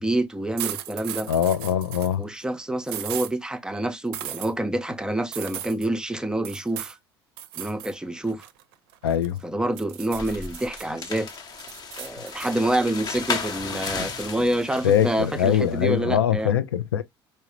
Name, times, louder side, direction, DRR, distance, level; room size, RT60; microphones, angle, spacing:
voice 1, 0.0-1.3 2.2-6.9 7.6-8.4 9.4-11.3 12.0-16.6, right 1 dB, 5° right, 0.6 m, -27 dB
sound 1, 0.6-2.1 2.9-3.3 4.1-4.5 5.3-5.9 6.4-7.0 7.4-7.9 8.3-9.4 9.8-10.8 11.3-12.5, right 12 dB, 60° right, 0.5 m, -36 dB
voice 2, 1.3-2.2 9.0-9.4 14.8-17.0, left 9 dB, 70° left, 0.4 m, -22 dB
sound 2, 10.2-15.7, left 5 dB, 30° left, 0.8 m, -34 dB
4.5 x 2.1 x 3.0 m
figure-of-eight pair, 60°, 13 cm